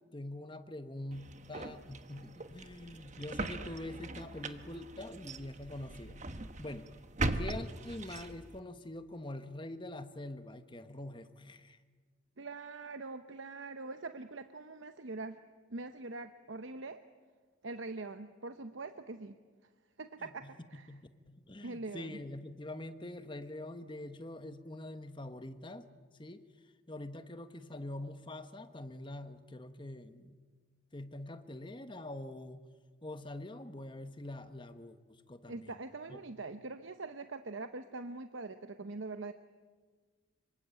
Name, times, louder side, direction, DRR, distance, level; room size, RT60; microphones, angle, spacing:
voice 1, 0.1-6.2 6.6-6.9 7.3-11.8 20.2-20.5 20.9-25.9 26.2-26.4 26.9-30.4 30.9-32.6 33.0-35.7 36.1-36.2, left 1 dB, 25° left, 9 dB, 1.2 m, -44 dB
sound 1, 1.1-8.6, right 2 dB, 35° right, 1.2 m, -40 dB
voice 2, 12.4-15.4 15.7-17.0 17.6-19.4 20.0-20.9 21.6-22.2 35.5-39.3, right 3 dB, 65° right, 9 dB, 0.9 m, -43 dB
26.0 x 23.5 x 9.1 m, 1.5 s
head